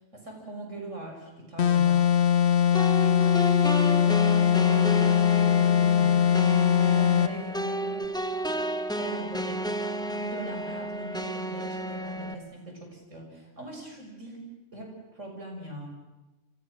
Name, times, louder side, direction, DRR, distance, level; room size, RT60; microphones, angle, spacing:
voice 1, 0.1-2.1 2.4-3.4 3.7-6.3 6.5-8.0 8.9-9.8 10.1-14.4 14.7-15.9, right 1 dB, 80° right, 1 dB, 7.0 m, -41 dB
sound 1, 1.6-7.4, left 9 dB, 60° left, 1.3 m, -21 dB
sound 2, 2.7-12.3, right 1 dB, 5° left, 1.5 m, -32 dB
29.5 x 26.0 x 6.5 m, 1.0 s
omnidirectional pair, 1.3 m